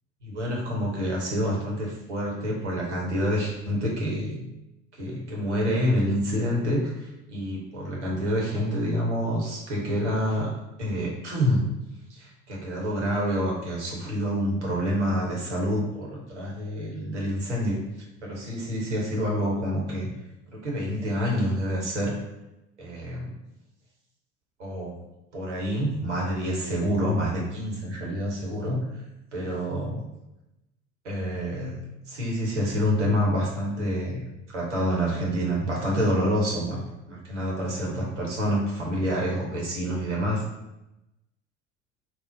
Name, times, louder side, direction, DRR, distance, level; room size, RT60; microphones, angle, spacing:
voice 1, 0.2-4.4 4.9-10.5 10.8-11.7 12.1-17.8 18.2-20.1 20.5-22.1 22.8-23.3 24.6-24.9 25.3-28.9 29.3-30.0 31.0-31.8 32.1-36.8 37.1-40.4, equal, 80° right, -3 dB, 1.0 m, -27 dB
3.0 x 2.0 x 3.8 m, 0.93 s
figure-of-eight pair, 60°, 35 cm